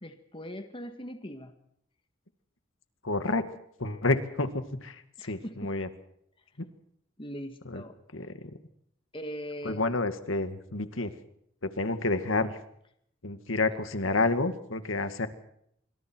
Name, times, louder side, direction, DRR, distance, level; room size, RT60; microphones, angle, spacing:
voice 1, 0.0-1.5 5.2-5.7 7.2-7.9 9.1-9.9, equal, 25° left, 7 dB, 1.8 m, -40 dB
voice 2, 3.0-3.4 3.8-5.9 6.6-6.7 7.7-7.8 8.1-8.4 9.6-11.1 11.6-12.6 13.2-15.3, left 2 dB, 85° left, 9 dB, 2.0 m, -29 dB
26.0 x 25.0 x 4.6 m, 0.71 s
head